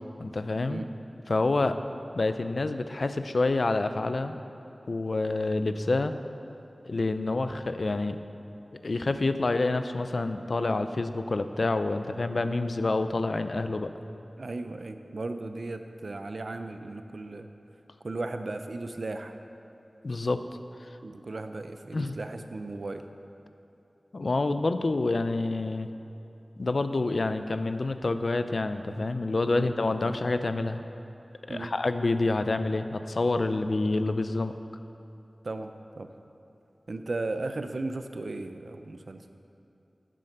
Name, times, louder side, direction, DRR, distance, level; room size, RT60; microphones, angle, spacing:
voice 1, 0.2-0.8 1.3-1.8 2.1-4.4 4.9-6.1 6.8-8.2 8.8-13.9 20.0-20.4 21.9-22.2 24.1-25.9 26.6-30.8 31.5-34.5, left 2 dB, 65° left, 10 dB, 0.5 m, -27 dB
voice 2, 14.4-17.5 18.0-19.4 21.0-23.0 29.4-29.7 30.0-30.1 31.5-31.7 35.4-36.1 36.9-39.2, right 2 dB, 70° right, 8 dB, 0.6 m, -36 dB
9.9 x 7.5 x 6.6 m, 2.8 s
wide cardioid pair, 70°, 0 cm